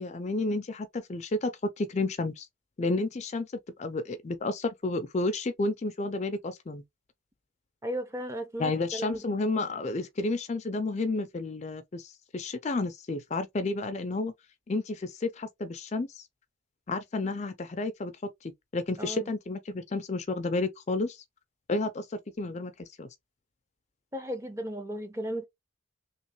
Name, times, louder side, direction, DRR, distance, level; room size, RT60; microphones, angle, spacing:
voice 1, 0.0-1.5 1.8-2.5 2.8-3.5 3.8-6.8 8.6-12.0 12.3-14.3 14.7-16.1 16.9-18.1 18.7-21.2 21.7-22.0 22.4-22.7 23.0-23.1, left 2 dB, 35° left, 0.4 m, -31 dB
voice 2, 7.8-9.4 19.0-19.3 24.1-25.5, equal, 15° right, 0.6 m, -35 dB
3.1 x 2.9 x 2.9 m
head